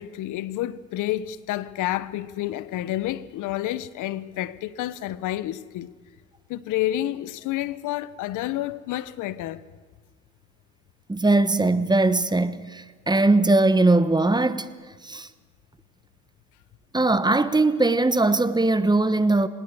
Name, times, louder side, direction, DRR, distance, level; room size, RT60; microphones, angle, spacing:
voice 1, 0.0-5.9 6.5-9.6, left 14 dB, 90° left, 0.9 m, -29 dB
voice 2, 11.1-14.7 15.0-15.3 16.9-19.5, right 2 dB, 15° right, 1.2 m, -20 dB
25.5 x 19.5 x 6.7 m
cardioid pair, 90°, 30 cm